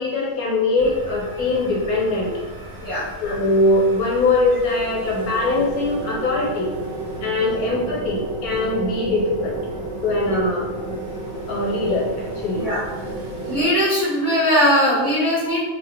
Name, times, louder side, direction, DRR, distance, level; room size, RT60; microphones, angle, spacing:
voice 1, 0.0-2.3 3.2-6.7 7.2-9.6 10.0-10.7 11.5-12.6, left 2 dB, 90° left, -2 dB, 1.3 m, -21 dB
sound 1, 0.8-13.6, right 1 dB, 70° right, 1.3 m, -33 dB
voice 2, 13.4-15.6, equal, 20° right, -10 dB, 0.7 m, -20 dB
2.8 x 2.8 x 3.2 m, 1.2 s
omnidirectional pair, 1.6 m